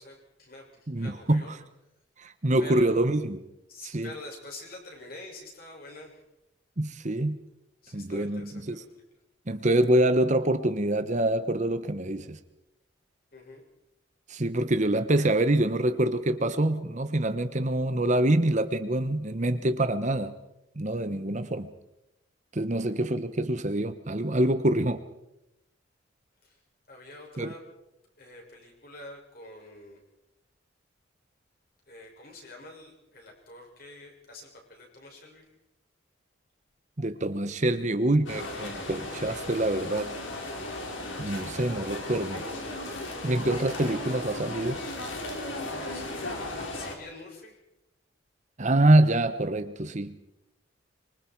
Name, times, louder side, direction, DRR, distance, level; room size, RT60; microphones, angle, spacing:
voice 1, 0.0-1.5 2.6-2.9 3.7-6.2 7.8-8.8 13.3-13.6 22.7-23.0 26.4-26.6 26.9-27.6 28.2-30.0 31.9-35.5 45.9-47.6, left 2 dB, 50° left, 0 dB, 6.8 m, -46 dB
voice 2, 0.9-1.4 2.2-3.4 3.9-4.1 6.8-7.4 7.9-8.8 9.5-12.4 14.3-20.3 20.8-21.7 22.5-25.0 27.4-27.5 37.0-40.1 41.2-42.4 43.2-44.8 48.6-50.1, right 1 dB, 40° right, 10 dB, 1.1 m, -25 dB
sound 1, 38.3-47.0, left 2 dB, 80° left, 4.3 m, -36 dB
25.5 x 23.5 x 4.7 m, 0.87 s
head